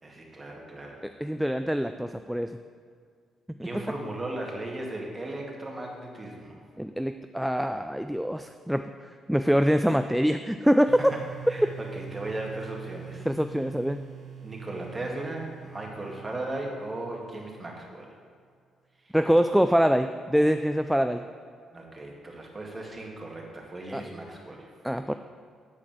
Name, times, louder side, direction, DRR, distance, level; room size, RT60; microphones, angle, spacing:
voice 1, 0.0-1.0 3.6-6.6 11.5-13.3 14.4-18.1 19.0-19.2 21.7-24.7, right 2 dB, 20° right, -1 dB, 2.0 m, -37 dB
voice 2, 1.0-2.6 3.7-3.8 6.8-8.9 9.3-11.0 13.3-14.0 19.1-21.2 23.9-24.0 24.8-25.1, equal, ahead, 8 dB, 0.3 m, -24 dB
sound 1, 10.9-17.7, right 7 dB, 55° right, 1.5 m, -44 dB
8.6 x 4.8 x 7.4 m, 2.1 s
cardioid pair, 90°, 0 cm